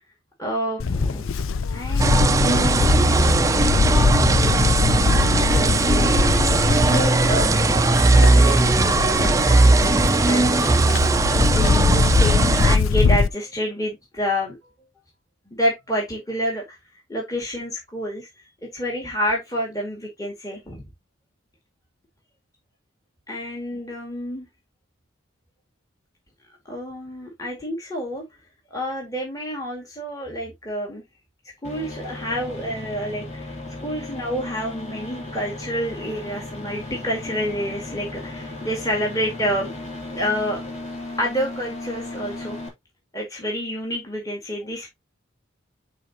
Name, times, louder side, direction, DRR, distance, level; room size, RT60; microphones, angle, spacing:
voice 1, 0.4-1.3 1.7-4.2 5.1-6.3 6.7-7.8 8.2-11.0 11.3-14.6 15.5-16.8 17.1-18.3 18.7-20.8 23.3-24.5 26.7-28.2 28.7-31.0 31.6-39.7 40.1-40.6 41.2-42.6 43.1-44.9, equal, 15° left, 2.2 m, -29 dB
Livestock farm animals working animals, 0.8-13.3, left 4 dB, 75° left, 0.5 m, -22 dB
sound 1, 2.0-12.8, right 2 dB, 15° right, 0.4 m, -18 dB
sound 2, 31.6-42.7, left 2 dB, 35° left, 2.8 m, -35 dB
10.5 x 4.2 x 2.9 m
head